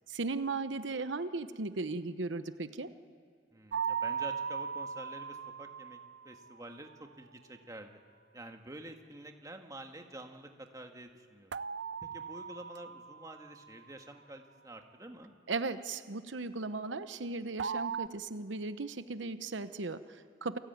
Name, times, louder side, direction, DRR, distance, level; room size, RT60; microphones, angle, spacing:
voice 1, 0.1-2.9 15.5-20.6, right 3 dB, 85° right, 11 dB, 1.0 m, -37 dB
voice 2, 3.5-6.0 6.2-8.0 8.3-11.6 12.0-15.3, right 1 dB, 20° right, 4 dB, 1.7 m, -48 dB
sound 1, 3.7-6.7 11.5-13.7 17.6-18.1, right 7 dB, 65° right, 0.5 m, -38 dB
29.0 x 18.5 x 9.3 m, 2.5 s
head